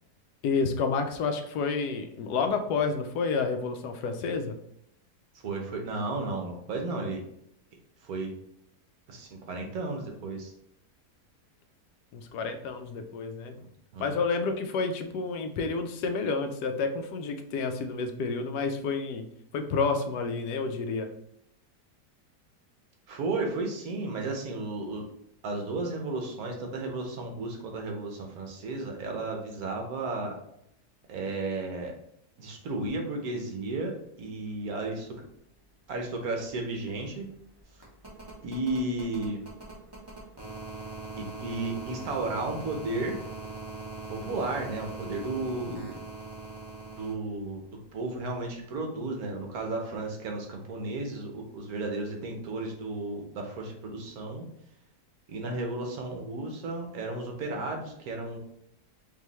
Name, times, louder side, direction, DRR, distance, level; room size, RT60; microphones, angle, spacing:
voice 1, 0.4-4.5 12.1-13.5 14.0-19.2 19.5-21.1, left 4 dB, 80° left, 6 dB, 1.1 m, -29 dB
voice 2, 5.3-7.2 8.0-8.3 9.1-10.5 13.6-14.1 23.1-25.0 25.4-30.4 31.1-31.9 32.4-33.9 34.2-35.1 35.9-37.3 38.4-39.4 41.2-43.2 44.1-46.0 46.9-47.6 47.9-54.4 55.3-58.4, right 2 dB, 70° right, 2 dB, 1.2 m, -33 dB
sound 1, 36.5-47.1 48.6-48.7, right 3 dB, 20° right, 0.9 m, -42 dB
4.8 x 2.7 x 3.0 m, 0.73 s
omnidirectional pair, 1.7 m